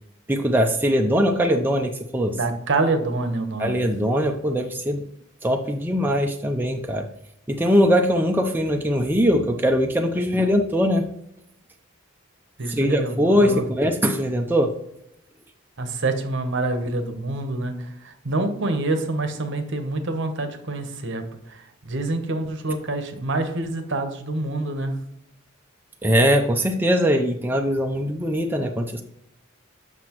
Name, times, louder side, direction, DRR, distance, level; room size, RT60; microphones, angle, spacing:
voice 1, 0.3-2.4 3.6-5.0 5.4-7.1 7.5-11.0 12.8-14.7 26.0-29.0, equal, 10° right, 3 dB, 0.5 m, -21 dB
voice 2, 2.4-3.9 12.6-13.7 15.8-25.0, right 2 dB, 60° right, 8 dB, 0.9 m, -27 dB
7.7 x 6.1 x 3.0 m, 0.77 s
head